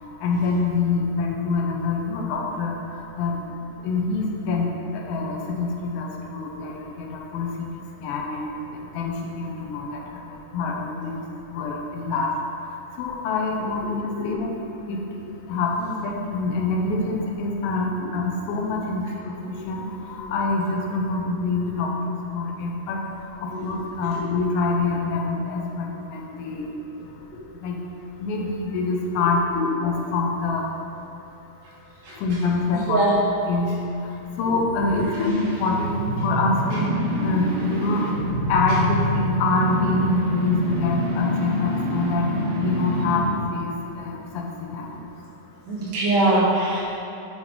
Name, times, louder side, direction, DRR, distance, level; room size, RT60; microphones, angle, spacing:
voice 1, 0.2-2.7 3.2-3.4 3.8-4.7 4.9-7.5 8.0-8.5 8.9-10.0 10.3-11.2 11.5-12.3 13.0-14.5 14.9-15.0 15.5-19.1 19.4-19.8 20.3-23.0 23.6-26.7 27.6-27.8 28.2-29.4 29.8-30.6 32.2-33.0 33.5-33.7 34.4-36.0 36.2-36.9 37.2-38.0 38.5-42.3 42.5-43.2 43.5-44.9, left 3 dB, 90° left, -1 dB, 2.5 m, -25 dB
voice 2, 13.8-14.5 18.6-18.7 23.5-24.2 29.5-29.7 32.0-32.2 32.7-33.2 34.5-34.6 34.9-35.3 36.7-36.8 45.6-47.0, right 2 dB, 45° right, -9 dB, 1.5 m, -24 dB
sound 1, 34.8-43.4, right 1 dB, 80° right, 2.7 m, -26 dB
7.1 x 4.0 x 4.5 m, 2.8 s
omnidirectional pair, 4.1 m